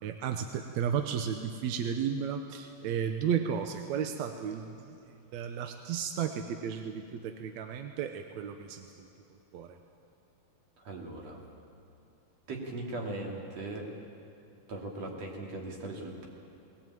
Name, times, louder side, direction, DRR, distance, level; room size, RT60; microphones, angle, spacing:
voice 1, 0.0-5.0 5.3-9.1 9.5-9.8, right 8 dB, 70° right, 6 dB, 1.8 m, -33 dB
voice 2, 10.9-11.4 12.5-13.8 14.7-16.3, right 2 dB, 50° right, 0 dB, 3.8 m, -39 dB
20.0 x 18.5 x 9.2 m, 2.7 s
omnidirectional pair, 4.0 m